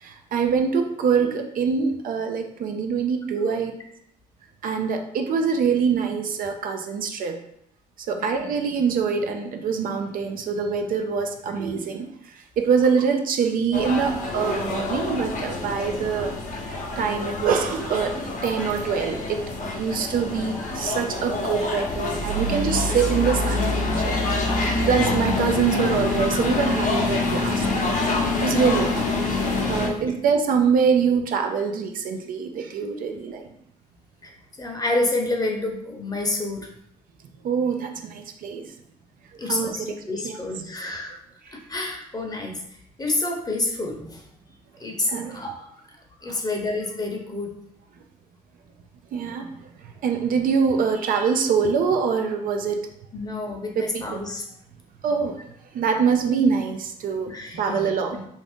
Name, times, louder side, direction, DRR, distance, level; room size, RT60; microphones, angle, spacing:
voice 1, 0.0-3.7 4.6-7.4 8.1-12.1 12.6-16.3 17.0-24.3 24.9-27.9 28.4-29.1 29.7-33.5 37.4-38.7 39.4-40.4 45.1-45.4 46.3-46.4 49.1-49.5 50.0-52.8 53.8-54.2 55.0-55.4 55.7-57.3 57.6-58.3, right 6 dB, 65° right, 5 dB, 0.4 m, -24 dB
voice 2, 8.1-8.6 29.8-30.2 34.2-34.3 34.6-36.7 39.4-41.2 41.5-42.6 43.0-44.2 44.8-45.7 46.2-47.5 53.1-54.5 57.3-58.2, left 2 dB, 25° left, 1 dB, 0.8 m, -29 dB
sound 1, 13.7-29.9, left 2 dB, 55° left, 0.8 m, -26 dB
2.6 x 2.5 x 3.5 m, 0.72 s
supercardioid pair, 65°, 16 cm